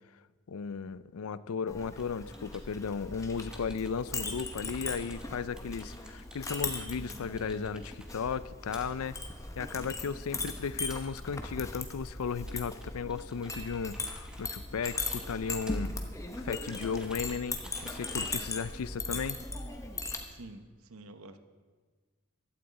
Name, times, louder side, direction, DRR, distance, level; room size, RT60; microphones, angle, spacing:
voice 1, 0.5-9.2 9.6-15.9 16.3-19.4, left 6 dB, 90° left, 17 dB, 0.5 m, -35 dB
Chink clink, 1.7-20.2, left 3 dB, 15° left, 0.9 m, -39 dB
sound 1, 2.0-19.5, right 1 dB, 5° right, 1.2 m, -55 dB
voice 2, 20.3-21.4, right 2 dB, 80° right, 9 dB, 0.9 m, -48 dB
15.5 x 12.5 x 4.1 m, 1.4 s
head